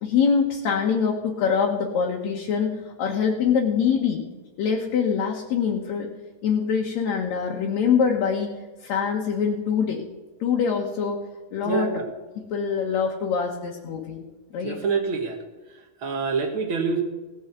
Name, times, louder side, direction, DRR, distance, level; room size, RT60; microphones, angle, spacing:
voice 1, 0.0-4.2 4.6-6.1 6.4-8.5 8.8-10.0 10.4-11.2 11.5-11.9 12.5-14.2 14.5-14.8, left 6 dB, 65° left, 0 dB, 2.4 m, -24 dB
voice 2, 11.6-12.0 14.6-15.4 15.7-17.0, right 5 dB, 55° right, 4 dB, 1.6 m, -26 dB
17.0 x 6.3 x 7.9 m, 1.2 s
omnidirectional pair, 3.6 m